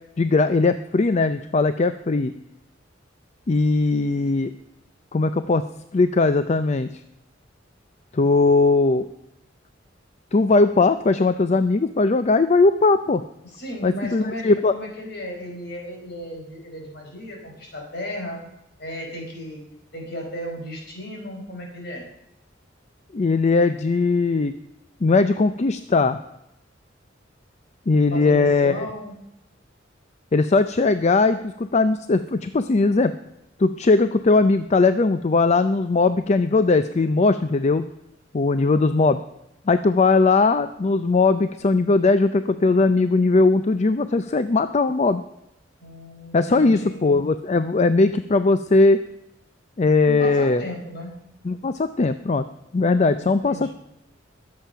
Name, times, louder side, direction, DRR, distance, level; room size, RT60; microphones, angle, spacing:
voice 1, 0.2-2.3 3.5-4.5 5.1-5.6 5.9-6.9 8.1-9.0 10.3-13.2 13.8-14.7 23.1-24.6 25.0-26.2 27.9-28.7 30.3-33.2 33.6-37.9 38.3-39.2 39.7-45.2 46.3-49.0 49.8-50.6 51.4-52.4 52.7-53.7, left 3 dB, 35° left, 11 dB, 0.5 m, -19 dB
voice 2, 13.4-18.4 18.8-19.6 19.9-22.1 28.1-29.1 45.8-47.0 50.1-51.1 53.2-53.7, equal, 60° left, 1 dB, 4.4 m, -35 dB
21.5 x 7.6 x 5.7 m, 0.84 s
head